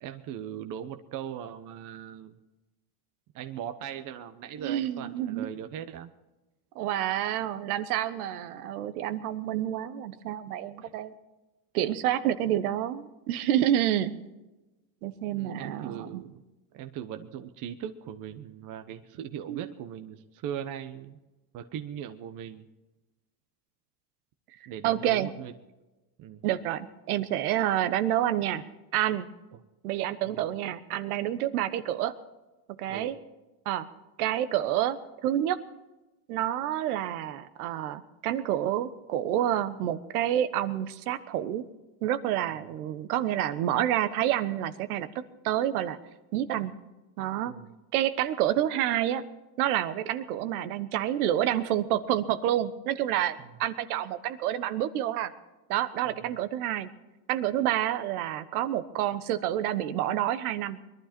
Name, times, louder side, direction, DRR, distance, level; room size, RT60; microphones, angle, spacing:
voice 1, 0.0-2.4 3.3-6.1 10.8-10.9 15.3-16.4 16.7-21.2 21.5-22.7 24.7-25.5 26.2-26.4 30.2-30.4 32.9-33.1 47.5-47.7 53.4-53.5 56.0-56.3, right 9 dB, 45° right, 7 dB, 1.1 m, -39 dB
voice 2, 4.6-5.5 6.7-11.1 11.7-14.1 15.0-16.2 19.5-19.7 24.8-25.3 26.4-28.6 28.9-29.3 29.8-32.1 32.8-33.2 33.6-33.9 34.2-35.6 36.3-41.6 42.0-45.1 45.4-46.0 46.3-46.7 47.2-47.5 47.9-49.2 49.6-55.3 55.7-56.9 57.3-60.8, right 12 dB, 85° right, 12 dB, 1.3 m, -28 dB
22.5 x 12.0 x 4.4 m, 1.1 s
supercardioid pair, 125°, 44 cm